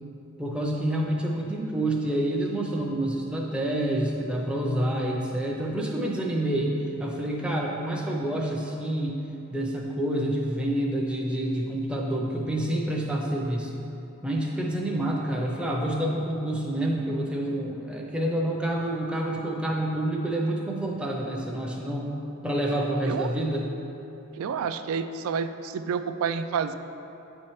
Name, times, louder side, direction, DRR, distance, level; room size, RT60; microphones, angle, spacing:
voice 1, 0.4-9.2 9.5-13.7 14.2-22.1 22.4-23.7, right 1 dB, 5° right, -2 dB, 0.5 m, -28 dB
voice 2, 24.4-26.7, right 6 dB, 80° right, 11 dB, 0.3 m, -29 dB
8.5 x 4.3 x 3.1 m, 2.9 s
head